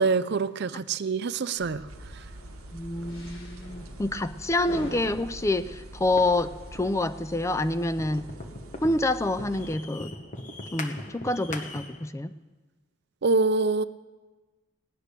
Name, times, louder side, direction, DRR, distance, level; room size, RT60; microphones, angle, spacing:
voice 1, 0.0-1.8 13.2-13.8, right 4 dB, 50° right, 14 dB, 0.5 m, -25 dB
sound 1, 1.6-6.8, equal, 70° left, 3.9 m, -43 dB
sound 2, 1.9-9.8, right 2 dB, 90° right, 0.9 m, -47 dB
voice 2, 2.7-8.3 8.8-10.1 10.7-12.3, left 2 dB, 15° left, 11 dB, 0.4 m, -27 dB
sound 3, 6.2-12.1, left 2 dB, 35° left, 1.1 m, -41 dB
17.5 x 10.0 x 6.7 m, 1.3 s
head